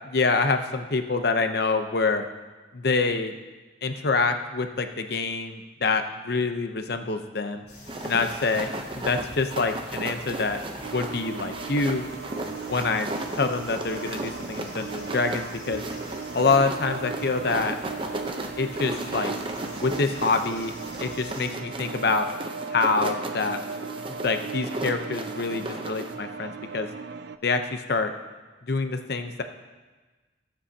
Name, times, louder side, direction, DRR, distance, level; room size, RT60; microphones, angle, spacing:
voice 1, 0.0-2.2 2.7-3.3 3.8-7.6 8.0-10.6 10.9-12.0 12.7-13.1 13.4-15.8 16.3-17.7 18.6-19.3 19.8-20.7 21.0-22.3 22.7-23.6 24.1-26.9 27.4-28.1 28.7-29.4, left 3 dB, 60° left, 7 dB, 0.8 m, -26 dB
sound 1, 7.7-21.5, left 1 dB, 35° left, 3.8 m, -47 dB
sound 2, 7.9-26.1, right 1 dB, 30° right, 0.8 m, -36 dB
sound 3, 10.8-27.4, right 5 dB, 65° right, 0.4 m, -38 dB
20.0 x 7.9 x 2.8 m, 1.3 s
head